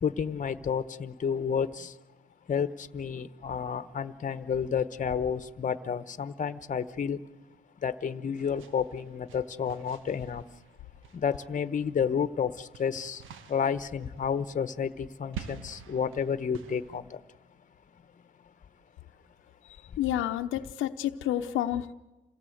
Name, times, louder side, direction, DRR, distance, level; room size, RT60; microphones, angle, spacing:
voice 1, 0.0-2.0 2.5-7.2 7.8-10.4 11.1-13.2 13.5-17.2, left 7 dB, 40° left, 1.1 m, -31 dB
sound 1, 8.4-11.9 12.2-17.0, right 8 dB, 85° right, 1.3 m, -48 dB
voice 2, 20.0-21.9, left 12 dB, 85° left, 0.8 m, -29 dB
28.0 x 17.0 x 7.9 m
cardioid pair, 90°, 20 cm